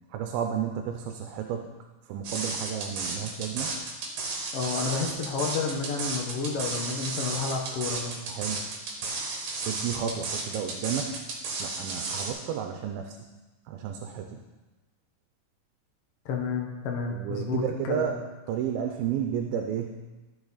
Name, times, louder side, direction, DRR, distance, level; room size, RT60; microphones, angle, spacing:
voice 1, 0.1-1.7 2.1-3.7 8.3-8.6 9.7-11.1 11.6-13.2 13.7-14.4 17.1-18.2 18.5-20.0, right 8 dB, 80° right, 5 dB, 2.4 m, -32 dB
sound 1, 2.2-12.3, right 3 dB, 60° right, 2.6 m, -33 dB
voice 2, 4.5-8.1 16.2-18.1, left 5 dB, 75° left, 1 dB, 1.3 m, -30 dB
13.0 x 6.4 x 4.1 m, 1.2 s
omnidirectional pair, 4.3 m